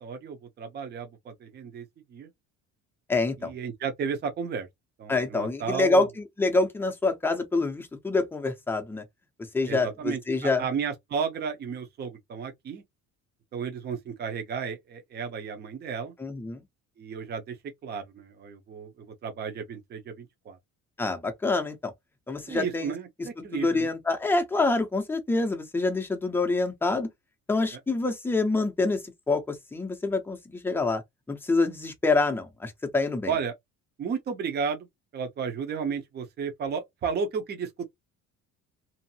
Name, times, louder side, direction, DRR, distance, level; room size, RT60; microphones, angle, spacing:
voice 1, 0.0-2.3 3.4-4.7 5.0-6.1 9.7-12.8 13.5-16.1 17.0-17.6 17.8-20.6 22.5-23.9 27.7-27.8 33.3-33.5 34.0-34.9 35.1-37.8, right 6 dB, 35° right, 0.7 m, -33 dB
voice 2, 3.1-3.5 5.1-9.0 9.5-10.6 16.2-16.6 21.0-21.9 22.3-22.9 23.5-27.1 27.5-31.0 31.3-33.3, left 3 dB, 5° left, 0.6 m, -26 dB
2.7 x 2.5 x 2.8 m
cardioid pair, 150°, 31 cm